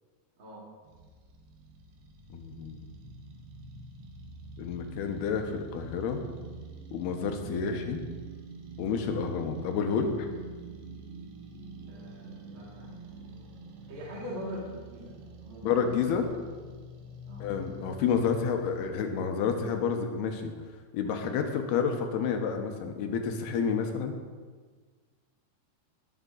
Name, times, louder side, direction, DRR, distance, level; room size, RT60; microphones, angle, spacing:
sound 1, 0.9-18.9, right 2 dB, 85° right, 3.3 m, -46 dB
voice 1, 2.3-2.8 4.6-6.2 6.9-8.0 8.8-10.3 15.6-16.3 17.4-20.5 20.9-24.1, left 6 dB, 80° left, 5 dB, 3.0 m, -29 dB
voice 2, 11.9-12.9 13.9-15.7 17.3-17.5, equal, 35° right, -6 dB, 2.5 m, -42 dB
20.5 x 7.1 x 4.0 m, 1.5 s
omnidirectional pair, 4.7 m